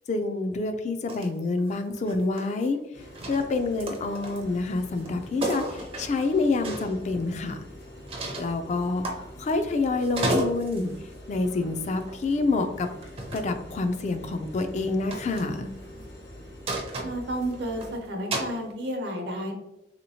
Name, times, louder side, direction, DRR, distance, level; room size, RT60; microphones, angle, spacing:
voice 1, 0.1-2.8 3.3-7.6 8.4-10.9 11.3-12.9 13.3-15.7, left 3 dB, 40° left, 8 dB, 0.3 m, -27 dB
sound 1, 1.1-1.3 1.6-2.8 3.1-4.6 5.0-5.1 5.4-7.0 8.1-8.5 9.0-9.7 10.0-10.9 12.1-12.3 13.0-13.5 15.1-15.5 16.7-17.8 18.3-18.6, right 2 dB, 35° right, 0.5 m, -32 dB
sound 2, 2.9-18.0, equal, 80° left, 1.0 m, -45 dB
voice 2, 17.0-19.5, right 1 dB, 75° right, 2 dB, 0.8 m, -31 dB
3.4 x 2.9 x 2.7 m, 0.91 s
head